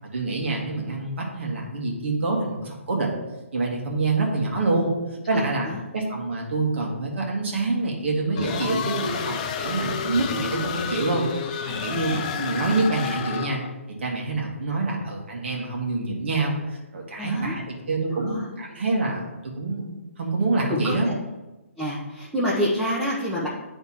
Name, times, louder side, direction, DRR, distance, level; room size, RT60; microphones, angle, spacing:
voice 1, 0.0-3.2 3.5-4.9 5.3-5.7 5.9-13.6 14.0-19.9 20.2-21.1, right 3 dB, 55° right, -1 dB, 1.7 m, -26 dB
voice 2, 5.3-5.8 11.9-12.3 17.2-17.6 18.1-18.5 20.7-21.2 21.8-23.5, equal, 5° right, -8 dB, 0.8 m, -28 dB
sound 1, 8.4-13.7, left 7 dB, 35° left, 0.5 m, -30 dB
9.4 x 3.5 x 4.3 m, 1.1 s
figure-of-eight pair, 135°, 7 cm